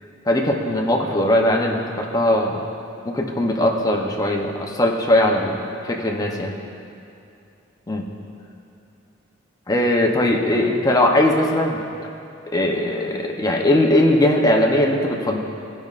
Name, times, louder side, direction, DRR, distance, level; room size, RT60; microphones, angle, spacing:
voice 1, 0.3-2.6 3.0-5.5 5.8-6.5 7.9-8.0 9.7-11.8 12.5-15.4, left 1 dB, 20° left, 0 dB, 0.6 m, -19 dB
15.0 x 5.3 x 2.4 m, 2.7 s
head